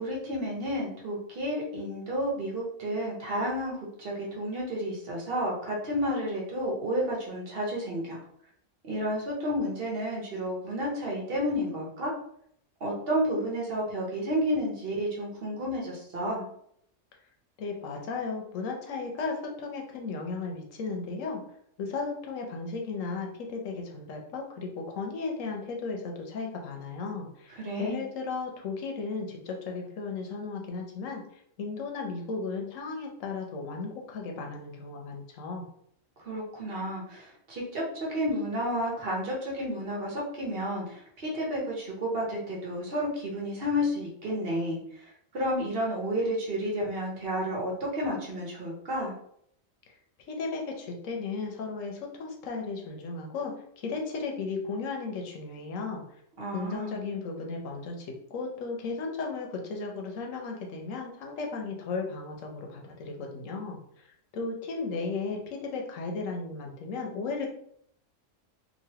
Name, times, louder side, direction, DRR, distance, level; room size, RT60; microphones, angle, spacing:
voice 1, 0.0-3.7 4.0-8.2 8.8-12.1 12.8-16.5 27.5-28.0 36.2-49.1 56.4-57.1, equal, 50° right, -3 dB, 1.0 m, -31 dB
voice 2, 17.6-21.4 21.8-35.7 50.3-56.0 56.5-64.1 64.3-67.5, left 4 dB, 90° left, 1 dB, 1.1 m, -35 dB
3.0 x 2.5 x 2.8 m, 0.69 s
omnidirectional pair, 1.3 m